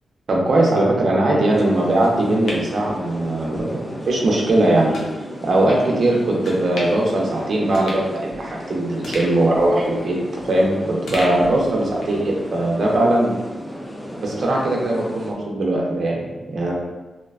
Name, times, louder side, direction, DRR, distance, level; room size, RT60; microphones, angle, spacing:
voice 1, 0.3-5.0 5.4-10.2 10.5-13.3 14.2-16.7, right 1 dB, 55° right, -2 dB, 0.5 m, -20 dB
sound 1, 1.5-15.3, equal, 5° left, 0.3 m, -35 dB
sound 2, 2.0-3.6 4.0-4.1 4.9-5.1 5.7-5.8 6.4-7.1 7.4-7.5 7.7-8.6 9.0-10.6 11.1-12.2 12.6-12.7, left 1 dB, 75° left, 0.5 m, -35 dB
2.4 x 2.2 x 2.3 m, 1.1 s
wide cardioid pair, 135°, 0 cm